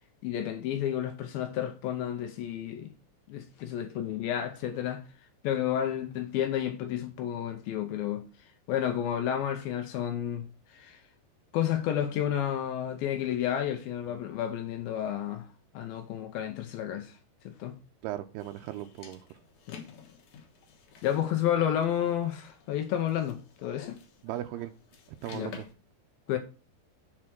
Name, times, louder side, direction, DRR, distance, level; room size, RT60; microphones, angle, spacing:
voice 1, 0.2-2.9 3.3-5.1 5.4-11.0 11.5-15.5 15.7-17.2 17.4-17.8 19.7-19.8 21.0-24.0 25.3-25.5 26.3-26.4, left 10 dB, 80° left, 2.1 m, -31 dB
voice 2, 18.0-19.2 24.2-24.7 25.2-25.7, right 13 dB, 85° right, 2.3 m, -37 dB
sound 1, 18.4-25.7, left 6 dB, 60° left, 2.2 m, -52 dB
7.4 x 4.4 x 6.0 m
omnidirectional pair, 5.0 m